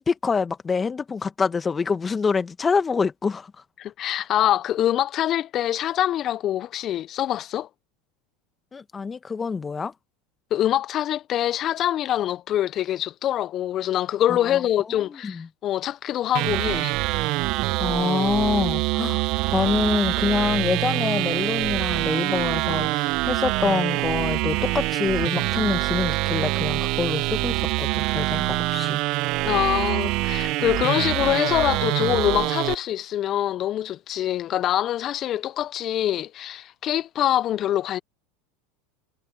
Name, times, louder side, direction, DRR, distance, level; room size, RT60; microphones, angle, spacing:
voice 1, 0.0-3.5 8.7-9.9 14.3-14.6 15.1-15.5 17.8-19.3 19.5-29.0, left 5 dB, 25° left, 1.8 m, -26 dB
voice 2, 3.8-7.7 10.5-17.0 29.4-38.0, left 12 dB, 45° left, 0.5 m, -24 dB
sound 1, 16.3-32.7, right 21 dB, 55° right, 0.8 m, -25 dB
hypercardioid pair, 85°, 0 cm